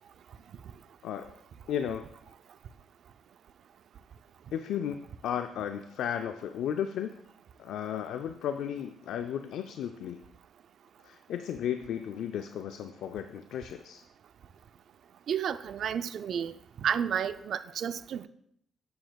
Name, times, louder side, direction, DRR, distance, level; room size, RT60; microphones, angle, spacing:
voice 1, 1.7-2.0 4.5-7.1 7.6-10.2 11.0-14.0, left 9 dB, 80° left, 7 dB, 0.4 m, -34 dB
voice 2, 15.3-16.5 16.8-18.3, right 8 dB, 65° right, 13 dB, 0.4 m, -31 dB
9.3 x 6.9 x 2.3 m, 0.73 s
cardioid pair, 90°, 0 cm